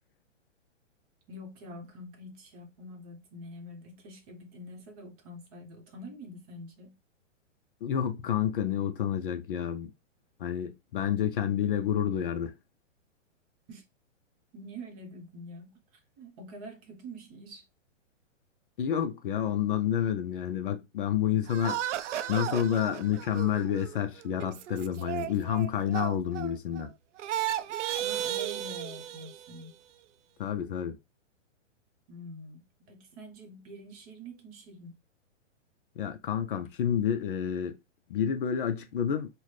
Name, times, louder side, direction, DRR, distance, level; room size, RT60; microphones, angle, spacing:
voice 1, 1.3-6.9 13.7-13.8 14.5-15.7 16.2-17.6 28.0-29.8 32.1-32.6 32.8-34.9, equal, 30° right, 0.8 m, -46 dB
voice 2, 7.8-9.9 10.4-12.5 18.8-21.8 22.3-26.9 30.4-31.0 36.0-37.8 38.1-39.3, left 9 dB, 45° left, 0.4 m, -29 dB
sound 1, 21.5-26.9 27.2-29.7, right 12 dB, 70° right, 0.5 m, -35 dB
4.1 x 2.1 x 3.1 m
hypercardioid pair, 150°, 38 cm